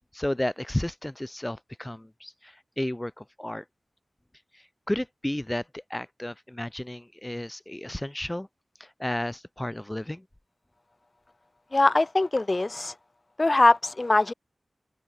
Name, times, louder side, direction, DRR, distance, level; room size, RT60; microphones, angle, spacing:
voice 1, 0.1-3.6 4.9-8.5 8.8-10.2, left 1 dB, 15° left, 4.9 m, -32 dB
voice 2, 11.7-12.9 13.4-14.3, left 2 dB, 35° left, 1.3 m, -22 dB
wide cardioid pair, 95°, 0 cm